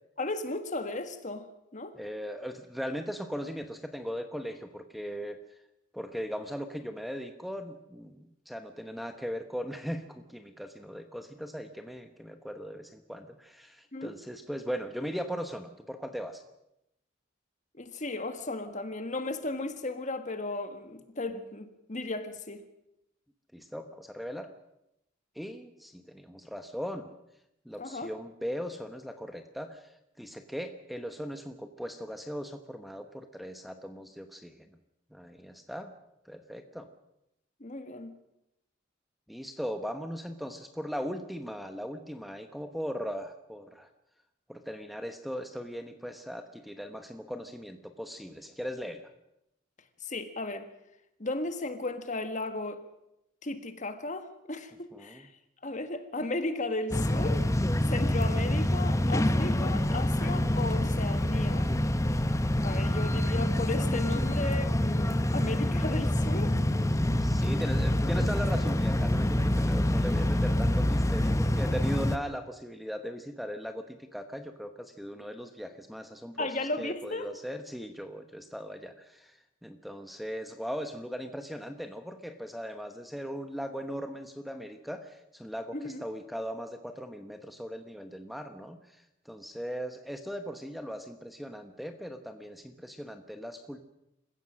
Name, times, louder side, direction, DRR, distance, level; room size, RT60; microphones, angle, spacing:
voice 1, 0.2-1.5 1.7-2.0 13.9-14.1 17.8-22.6 27.8-28.1 37.6-38.1 50.0-50.7 51.2-52.8 53.4-55.3 55.6-57.5 57.9-61.7 62.6-66.6 76.4-77.3 85.7-86.0, left 2 dB, 40° left, 9 dB, 1.7 m, -35 dB
voice 2, 2.0-5.4 5.9-16.4 23.5-24.5 25.3-27.1 27.6-34.7 35.1-35.9 36.2-36.9 39.3-43.9 44.5-49.0 54.9-55.3 67.2-76.5 76.8-93.8, equal, ahead, 7 dB, 1.1 m, -39 dB
sound 1, 56.9-72.2, left 1 dB, 15° left, 0.8 m, -26 dB
27.5 x 16.0 x 6.4 m, 0.84 s
head